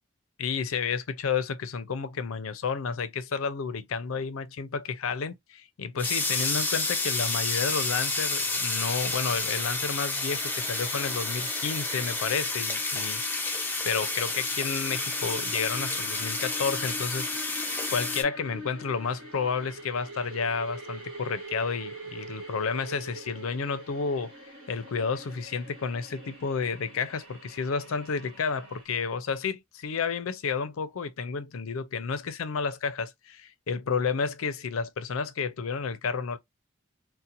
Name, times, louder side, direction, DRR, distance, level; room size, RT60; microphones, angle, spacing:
voice 1, 0.4-13.5 13.8-17.6 17.9-36.4, left 5 dB, 85° left, 0.5 m, -31 dB
sound 1, 6.0-18.2, left 3 dB, 10° left, 0.4 m, -30 dB
sound 2, 10.3-28.8, right 1 dB, 65° right, 1.2 m, -44 dB
2.8 x 2.1 x 2.5 m
head